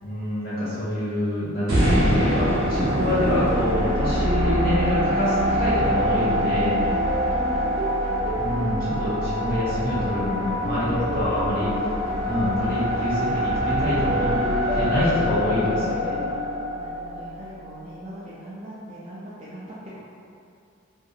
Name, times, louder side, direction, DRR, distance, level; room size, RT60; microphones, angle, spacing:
voice 1, 0.0-6.8 8.3-11.7 12.2-14.3 14.7-16.2, left 1 dB, 45° left, -11 dB, 1.2 m, -26 dB
sound 1, 1.7-17.8, equal, 70° right, 0.7 m, -25 dB
sound 2, 2.8-6.1 6.6-9.8 10.4-13.7 14.2-17.4, equal, 15° right, 0.9 m, -34 dB
voice 2, 6.8-7.7 16.3-16.4 16.8-20.0, equal, 35° right, -9 dB, 0.3 m, -40 dB
2.8 x 2.5 x 2.4 m, 2.5 s
head